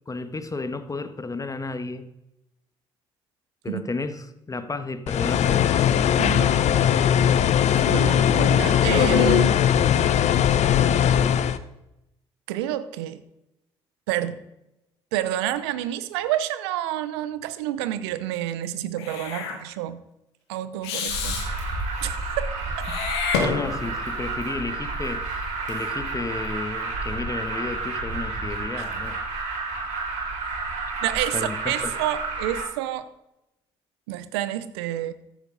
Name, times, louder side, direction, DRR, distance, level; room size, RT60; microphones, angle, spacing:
voice 1, 0.1-2.1 3.6-5.8 22.9-23.0 23.3-29.2 31.3-31.9, left 3 dB, 25° left, 10 dB, 1.5 m, -32 dB
sound 1, 5.1-11.6, left 9 dB, 60° left, 0.8 m, -19 dB
voice 2, 6.2-6.9 7.8-9.6 12.5-13.2 14.1-14.4 15.1-20.0 20.5-21.4 22.0-22.9 28.8-28.9 31.0-33.1 34.1-35.1, right 12 dB, 85° right, 14 dB, 0.7 m, -29 dB
Meow / Hiss, 19.0-19.6 20.8-21.5 22.8-24.0, left 5 dB, 85° left, 1.8 m, -28 dB
Alarm, 21.1-32.6, right 3 dB, 65° right, 4.0 m, -30 dB
14.0 x 10.0 x 4.0 m, 0.88 s
hypercardioid pair, 50°, 13 cm